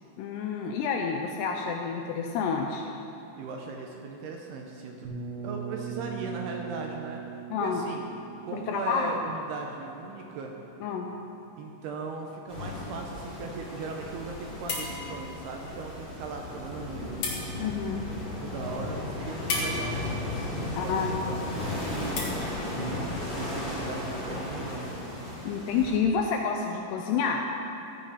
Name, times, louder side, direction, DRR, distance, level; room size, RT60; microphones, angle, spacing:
voice 1, 0.2-2.8 7.5-7.8 8.5-9.1 10.8-11.1 17.6-18.1 20.8-21.2 25.4-27.5, left 6 dB, 80° left, 2 dB, 2.4 m, -29 dB
voice 2, 3.4-5.2 5.4-7.2 7.6-8.0 8.4-10.6 11.6-17.2 18.4-22.3 22.5-25.1, right 4 dB, 75° right, 1 dB, 2.6 m, -38 dB
sound 1, 5.0-10.8, right 7 dB, 60° right, 2.6 m, -40 dB
sound 2, 12.5-26.0, left 1 dB, 15° left, 1.3 m, -35 dB
sound 3, 13.8-24.1, left 2 dB, 55° left, 3.0 m, -39 dB
14.0 x 8.9 x 5.7 m, 2.9 s
omnidirectional pair, 5.3 m